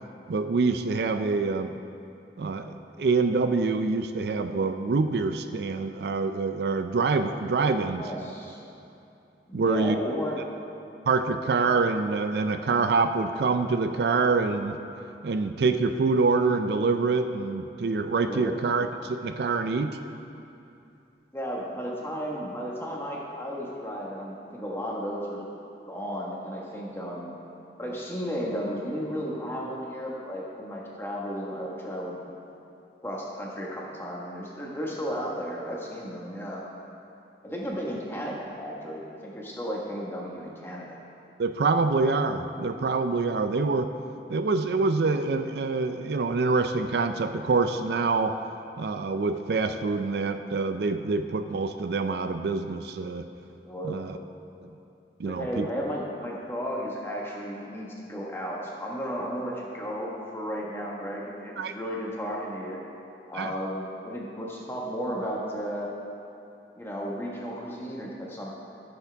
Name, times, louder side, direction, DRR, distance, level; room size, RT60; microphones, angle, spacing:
voice 1, 0.3-1.7 2.4-8.0 9.5-10.0 11.1-14.8 15.2-20.0 41.4-43.9 44.3-48.4 48.8-53.3 53.8-54.2 55.2-55.7 61.6-61.7 63.3-63.5, right 4 dB, 65° right, 8 dB, 0.4 m, -26 dB
voice 2, 7.9-8.6 9.5-10.4 18.3-18.5 21.3-25.5 25.9-27.4 27.8-32.2 33.0-36.6 37.4-41.0 53.7-54.0 55.2-62.8 63.3-65.9 66.8-68.6, equal, 15° left, -3 dB, 1.3 m, -34 dB
14.5 x 7.1 x 3.4 m, 2.7 s
head